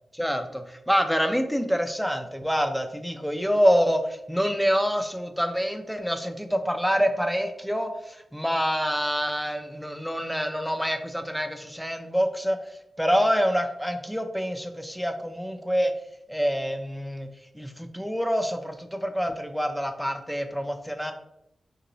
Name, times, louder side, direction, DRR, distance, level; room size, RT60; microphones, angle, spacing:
voice 1, 0.1-12.6 13.0-15.9 16.3-17.3 17.5-21.1, equal, ahead, 6 dB, 0.4 m, -26 dB
2.9 x 2.8 x 2.6 m, 0.84 s
cardioid pair, 50°, 0 cm